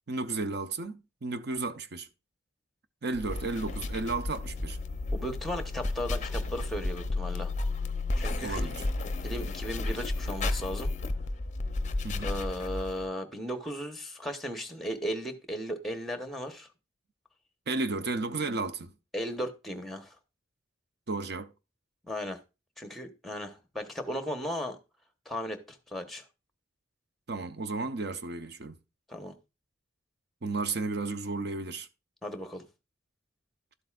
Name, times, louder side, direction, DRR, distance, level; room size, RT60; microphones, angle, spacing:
voice 1, 0.1-2.1 3.0-4.8 8.4-8.9 12.0-12.3 17.7-18.9 21.1-21.5 27.3-28.8 30.4-31.9, right 3 dB, 50° right, 0.7 m, -33 dB
sound 1, 3.1-13.0, left 2 dB, 35° left, 0.6 m, -32 dB
voice 2, 5.1-7.5 8.2-8.8 9.2-10.9 12.2-16.7 19.1-20.1 22.1-22.4 22.8-24.8 25.2-26.2 29.1-29.3 32.2-32.7, equal, ahead, 1.0 m, -36 dB
12.0 x 7.8 x 2.4 m
head